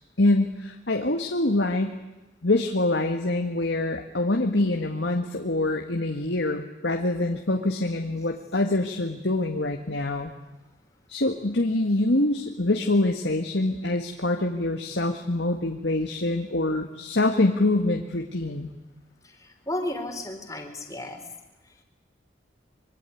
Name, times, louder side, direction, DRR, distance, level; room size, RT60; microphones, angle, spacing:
voice 1, 0.2-2.0 2.4-10.3 11.1-18.7, left 2 dB, 75° left, 3 dB, 1.9 m, -25 dB
voice 2, 19.2-21.2, left 1 dB, 20° left, 5 dB, 3.7 m, -33 dB
25.0 x 23.5 x 9.4 m, 1.0 s
head